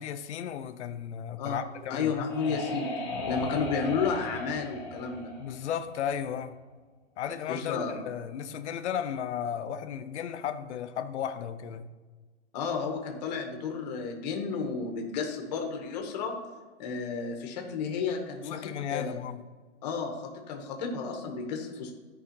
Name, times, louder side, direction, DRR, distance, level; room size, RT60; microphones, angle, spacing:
voice 1, 0.0-2.6 5.4-6.5 7.2-11.8 18.4-19.4, left 8 dB, 65° left, 0.7 m, -35 dB
sound 1, 1.7-6.3, left 3 dB, 10° left, 0.7 m, -37 dB
voice 2, 1.9-2.9 3.3-5.3 7.5-8.1 12.5-16.4 16.8-19.2 19.8-20.2 20.5-21.9, left 5 dB, 35° left, 1.1 m, -32 dB
13.0 x 4.9 x 2.9 m
hypercardioid pair, 170°, 37 cm